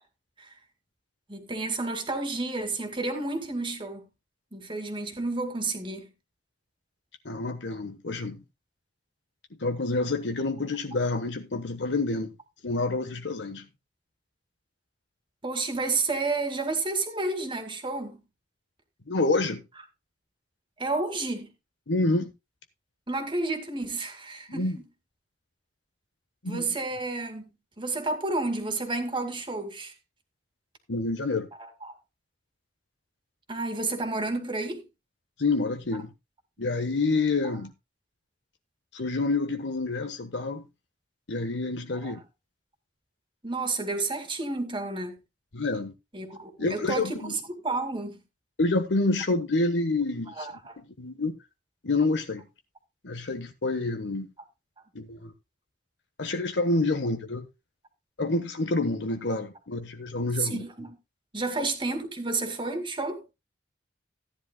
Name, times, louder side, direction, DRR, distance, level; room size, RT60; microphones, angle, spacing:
voice 1, 1.3-4.0 4.5-6.1 15.4-18.2 20.8-21.5 23.1-24.7 26.5-27.4 27.8-29.9 31.6-31.9 33.5-34.8 41.9-42.2 43.4-45.2 46.1-48.2 50.4-50.8 60.4-60.9 61.3-63.2, right 3 dB, 30° right, 2.2 m, -31 dB
voice 2, 7.2-8.4 9.6-12.3 12.6-13.7 19.1-19.6 21.9-22.3 24.5-24.8 26.4-26.6 30.9-31.5 35.4-36.1 36.6-37.7 38.9-40.6 41.3-42.2 45.5-45.9 46.6-47.4 48.6-50.5 51.0-51.3 51.8-52.4 53.0-54.3 54.9-55.3 56.2-57.5 58.2-60.6 61.6-61.7, left 2 dB, 75° left, 1.2 m, -28 dB
15.0 x 10.5 x 2.3 m
head